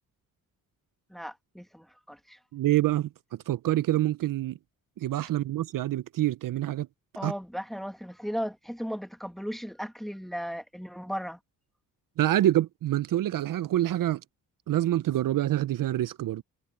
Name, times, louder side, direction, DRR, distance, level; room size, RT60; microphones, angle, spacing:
voice 1, 1.1-2.4 7.1-11.4, equal, ahead, 1.6 m, -36 dB
voice 2, 2.5-4.6 5.0-6.9 7.2-7.3 12.2-14.2 14.7-16.4, right 13 dB, 65° right, 0.6 m, -26 dB
cardioid pair, 110°, 35 cm